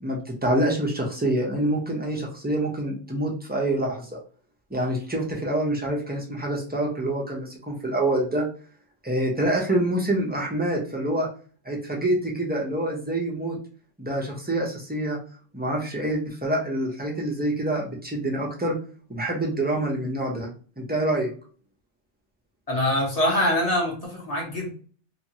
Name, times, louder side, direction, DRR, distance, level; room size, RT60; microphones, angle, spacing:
voice 1, 0.0-4.2 4.7-8.5 9.0-11.3 11.6-13.6 14.0-15.2 15.5-18.7 19.1-20.5 20.8-21.3 23.3-23.5, right 1 dB, 15° right, -2 dB, 0.4 m, -26 dB
voice 2, 22.7-24.7, left 1 dB, 35° left, -1 dB, 0.9 m, -24 dB
2.9 x 2.3 x 2.8 m, 0.41 s
omnidirectional pair, 1.3 m